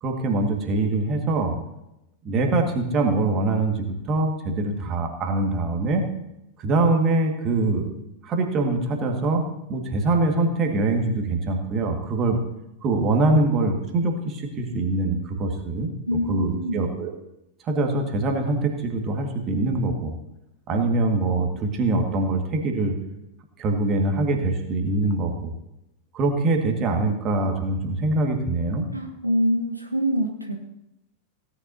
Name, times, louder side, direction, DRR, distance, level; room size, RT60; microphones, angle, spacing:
voice 1, 0.0-1.5 2.2-6.1 6.6-7.9 8.2-9.4 9.7-12.4 12.8-15.9 16.3-17.1 17.6-20.1 20.7-22.9 23.6-25.5 26.1-28.9, right 2 dB, 30° right, 3 dB, 1.8 m, -23 dB
voice 2, 16.1-16.9 28.9-30.5, equal, 90° right, 3 dB, 1.2 m, -25 dB
17.5 x 9.9 x 2.8 m, 0.87 s
figure-of-eight pair, 90°, 0 cm